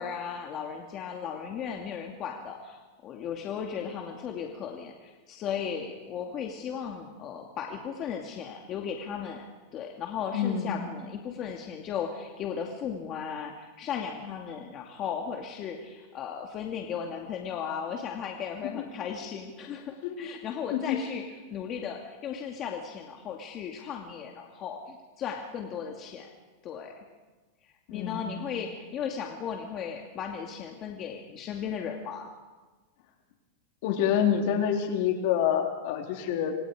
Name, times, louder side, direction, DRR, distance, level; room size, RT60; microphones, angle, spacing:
voice 1, 0.0-9.5 9.7-21.2 21.5-26.3 26.6-26.9 27.9-32.3, left 7 dB, 35° left, 1 dB, 2.2 m, -36 dB
voice 2, 10.3-10.8 18.7-18.8 20.0-20.3 20.7-21.0 27.9-28.4 33.8-36.6, left 9 dB, 60° left, 2 dB, 4.0 m, -27 dB
26.5 x 26.0 x 4.9 m, 1.3 s
supercardioid pair, 145°, 0 cm